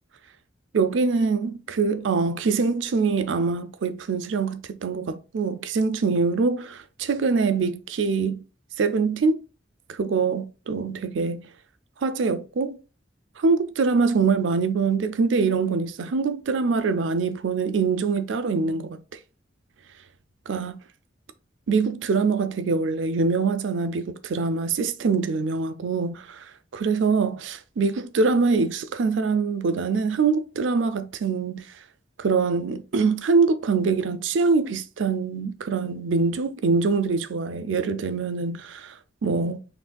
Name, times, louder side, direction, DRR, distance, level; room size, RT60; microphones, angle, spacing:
voice 1, 0.7-8.4 8.8-9.4 9.9-11.5 12.0-12.8 13.4-19.0 20.5-20.8 21.7-26.4 26.7-31.7 32.2-39.6, right 4 dB, 85° right, 0.5 m, -24 dB
6.0 x 2.5 x 2.2 m
head